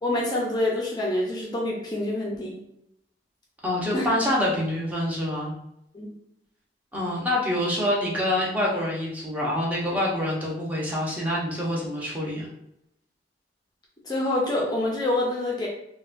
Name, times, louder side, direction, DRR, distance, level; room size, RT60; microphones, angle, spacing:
voice 1, 0.0-2.6 3.9-4.1 5.9-6.1 14.0-15.7, left 1 dB, 25° left, -3 dB, 0.6 m, -26 dB
voice 2, 3.6-5.5 6.9-12.5, left 1 dB, 10° right, -5 dB, 0.8 m, -26 dB
4.0 x 2.2 x 2.5 m, 0.78 s
head